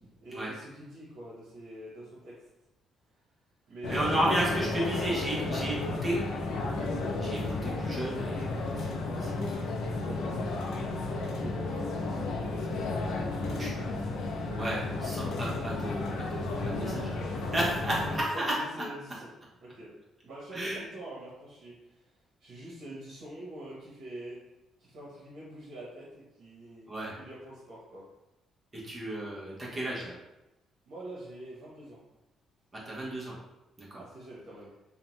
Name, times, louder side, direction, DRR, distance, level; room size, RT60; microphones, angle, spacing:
voice 1, 0.2-2.4 3.7-4.6 10.0-12.8 13.2-14.0 17.8-19.3 19.6-19.9 20.2-22.1 22.4-24.4 24.8-28.0 30.9-32.0 34.0-34.7, right 1 dB, 70° right, -6 dB, 0.9 m, -45 dB
sound 1, 3.8-18.2, left 2 dB, 80° left, 0.4 m, -33 dB
voice 2, 3.9-6.2 7.2-9.3 13.5-13.7 14.6-18.8 20.5-20.8 26.9-27.2 28.8-30.2 32.7-33.4 33.8-34.0, right 1 dB, 30° right, -5 dB, 0.8 m, -33 dB
2.6 x 2.1 x 3.0 m, 0.95 s
cardioid pair, 90°, 0 cm